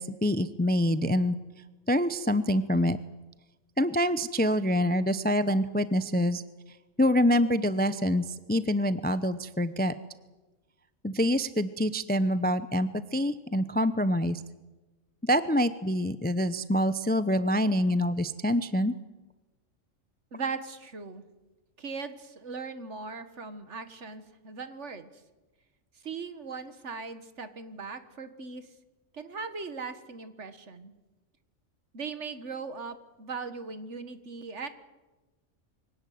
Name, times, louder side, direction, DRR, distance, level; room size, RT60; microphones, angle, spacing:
voice 1, 0.0-1.4 1.9-3.0 3.8-6.4 7.0-9.9 11.0-14.4 15.2-18.9, equal, 10° left, 13 dB, 0.5 m, -26 dB
voice 2, 20.3-21.2 21.8-25.1 26.0-28.7 29.1-30.9 31.9-34.7, right 4 dB, 60° right, 11 dB, 1.8 m, -39 dB
24.0 x 17.0 x 9.4 m, 1.2 s
omnidirectional pair, 1.4 m